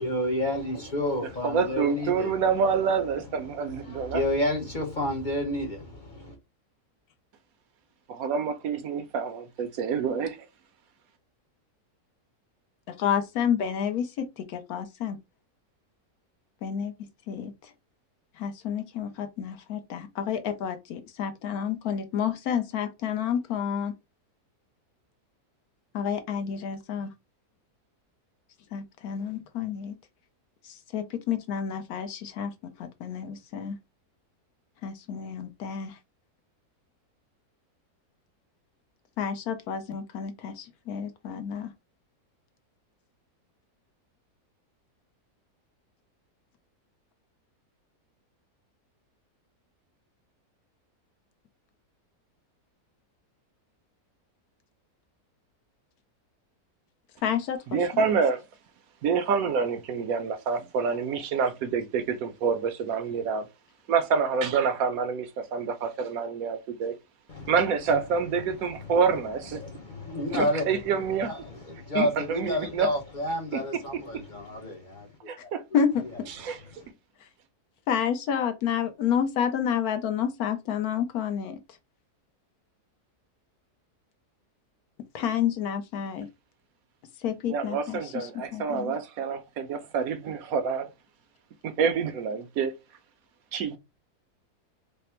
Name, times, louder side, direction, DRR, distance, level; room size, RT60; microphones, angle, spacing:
voice 1, 0.0-2.4 3.5-6.4 67.3-67.5 67.9-68.0 68.4-69.2 69.5-76.1 76.5-76.9, left 1 dB, 45° left, 0.7 m, -31 dB
voice 2, 1.4-4.2 8.1-10.4 57.7-58.4 59.0-63.5 63.9-66.9 67.5-69.6 70.3-71.3 71.9-72.9 75.3-75.6 76.3-76.6 87.5-90.9 91.6-92.7 93.5-93.8, right 6 dB, 70° right, 1.0 m, -27 dB
voice 3, 13.0-15.2 16.6-17.7 18.4-23.9 25.9-27.1 28.7-30.0 30.6-33.8 34.8-36.0 39.2-41.7 57.2-58.0 75.7-76.1 77.9-81.6 85.1-86.3 87.2-89.0, left 8 dB, 75° left, 1.1 m, -30 dB
3.3 x 2.0 x 4.2 m
omnidirectional pair, 1.7 m